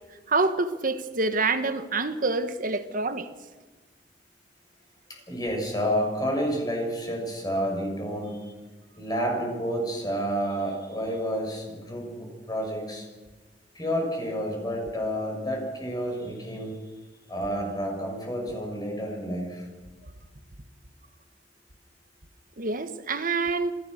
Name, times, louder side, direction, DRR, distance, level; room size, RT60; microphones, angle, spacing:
voice 1, 0.3-3.3 22.6-23.7, right 3 dB, 50° right, 1.5 m, -26 dB
voice 2, 5.3-8.5 9.0-13.0 13.7-16.7 17.3-19.6, equal, 20° left, 6.7 m, -30 dB
26.5 x 16.5 x 6.6 m
head